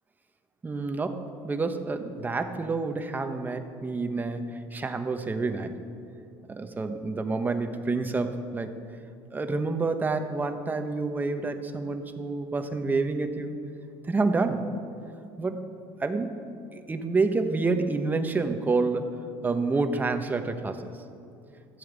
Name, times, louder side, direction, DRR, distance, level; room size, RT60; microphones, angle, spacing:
voice 1, 0.6-4.4 4.7-5.7 6.5-8.7 9.3-13.6 14.1-14.7 15.4-15.6 16.0-16.4 16.7-19.2 19.4-20.9, right 3 dB, 20° right, 7 dB, 1.2 m, -28 dB
13.5 x 8.6 x 8.3 m, 2.6 s
supercardioid pair, 110°, 10 cm